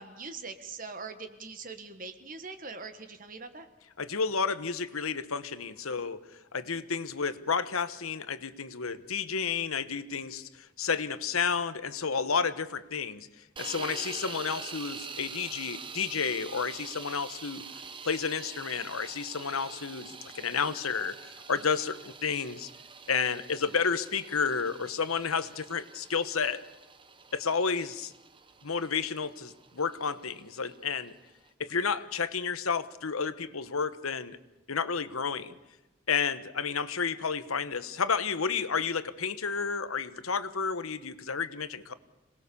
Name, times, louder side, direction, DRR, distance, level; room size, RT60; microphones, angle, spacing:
voice 1, 0.0-3.7, right 4 dB, 40° right, 8 dB, 1.5 m, -42 dB
voice 2, 4.0-6.2 6.5-13.3 13.6-17.6 18.0-22.7 23.1-26.6 27.3-28.1 28.6-31.1 31.6-34.4 34.7-35.5 36.1-41.9, left 5 dB, 85° left, 13 dB, 1.2 m, -31 dB
sound 1, 13.6-31.5, right 5 dB, 25° right, 1.0 m, -45 dB
26.5 x 19.5 x 7.0 m, 1.0 s
head